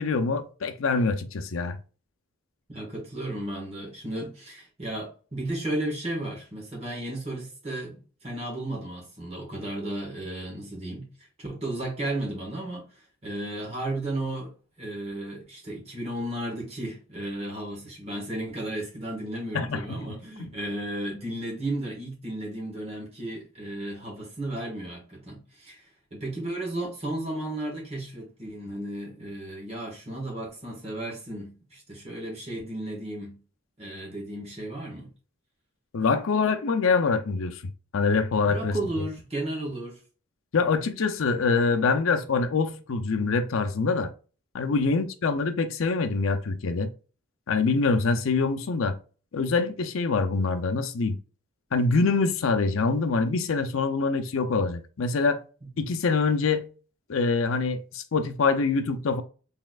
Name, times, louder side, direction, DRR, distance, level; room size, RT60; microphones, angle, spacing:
voice 1, 0.0-1.8 19.5-20.5 35.9-37.6 37.9-38.7 40.5-44.1 44.5-46.9 47.5-48.9 49.3-51.2 51.7-55.4 55.8-56.6 57.1-59.2, left 4 dB, 70° left, 0.5 m, -25 dB
voice 2, 2.7-11.1 11.4-12.9 13.2-25.8 26.1-33.4 33.8-35.1 38.5-40.0 44.7-44.9 55.6-55.7, right 1 dB, 30° right, 1.6 m, -34 dB
4.1 x 3.5 x 2.4 m
head